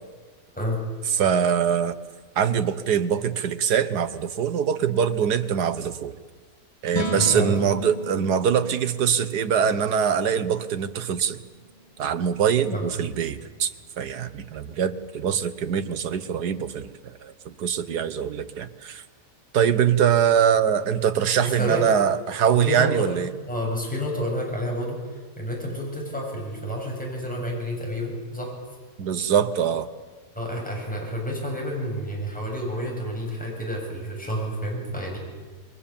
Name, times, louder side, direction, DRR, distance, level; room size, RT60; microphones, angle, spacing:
voice 1, 1.1-2.0 2.4-6.1 6.8-11.4 12.0-13.7 14.0-19.0 19.5-23.3 29.0-29.9, right 8 dB, 70° right, 12 dB, 1.6 m, -23 dB
sound 1, 6.9-13.2, left 1 dB, 20° left, 2.7 m, -36 dB
voice 2, 7.2-7.5 12.7-12.9 21.4-21.9 22.7-23.1 23.5-28.5 30.3-35.2, equal, 5° left, -1 dB, 7.1 m, -29 dB
28.5 x 21.5 x 7.2 m, 1.4 s
omnidirectional pair, 1.8 m